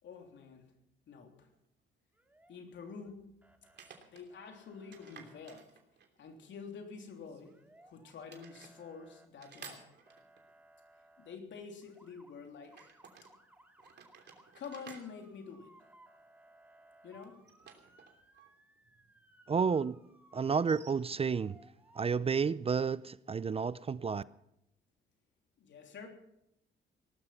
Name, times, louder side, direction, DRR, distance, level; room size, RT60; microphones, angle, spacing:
voice 1, 0.0-0.6 1.1-1.5 2.5-3.4 4.1-5.7 6.2-7.6 7.8-9.9 11.2-12.9 14.5-15.7 17.0-17.5 25.6-26.1, left 5 dB, 70° left, 3.3 m, -48 dB
sound 1, 1.5-1.6 3.6-4.3 4.9-6.3 7.2-7.9 8.3-8.8 9.4-10.5 12.6-13.3 13.8-16.2 17.2-18.5 18.8-18.9 20.5-20.9, right 7 dB, 60° right, 3.0 m, -55 dB
Motor vehicle (road) / Siren, 2.1-3.1 3.4-3.9 4.3-5.6 7.4-8.1 8.4-11.4 11.8-12.3 12.7-22.1, right 1 dB, 10° right, 2.3 m, -63 dB
voice 2, 19.5-20.0 20.3-21.6 22.0-24.2, right 6 dB, 30° right, 0.5 m, -31 dB
18.5 x 12.5 x 5.8 m
cardioid pair, 90°, 20 cm